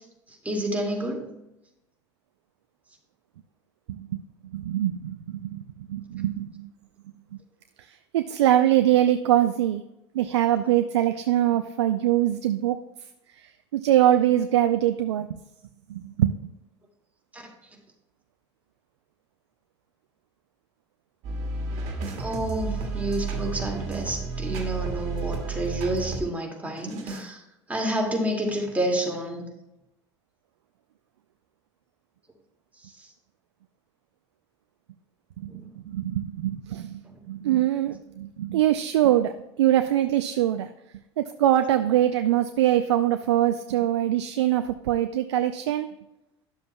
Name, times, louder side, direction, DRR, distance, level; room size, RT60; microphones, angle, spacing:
voice 1, 0.4-1.3 17.3-17.5 22.2-27.4 27.7-29.5 33.0-33.1 35.5-35.7 37.0-37.2, right 1 dB, 10° right, 0 dB, 2.1 m, -29 dB
voice 2, 3.9-6.7 7.8-9.8 10.1-12.8 13.4-15.3 15.9-16.5 35.4-37.0 37.3-40.7 41.2-45.9, right 12 dB, 80° right, 9 dB, 0.4 m, -23 dB
sound 1, 21.2-26.3 26.8-27.3, right 4 dB, 55° right, 1.7 m, -32 dB
11.5 x 7.1 x 2.2 m, 0.91 s
hypercardioid pair, 75°, 14 cm